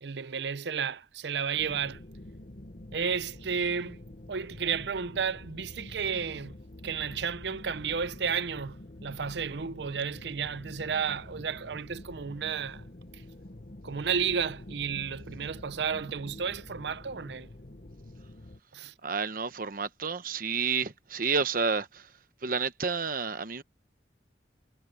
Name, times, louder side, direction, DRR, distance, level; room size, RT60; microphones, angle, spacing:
voice 1, 0.0-2.0 2.9-4.0 4.3-6.6 6.8-8.8 9.0-12.8 13.1-13.2 13.8-17.5 18.7-18.9, right 6 dB, 70° right, 0.6 m, -32 dB
sound 1, 1.6-18.6, left 1 dB, 50° left, 1.1 m, -47 dB
voice 2, 19.0-22.1 22.4-23.6, right 5 dB, 50° right, 1.0 m, -30 dB
head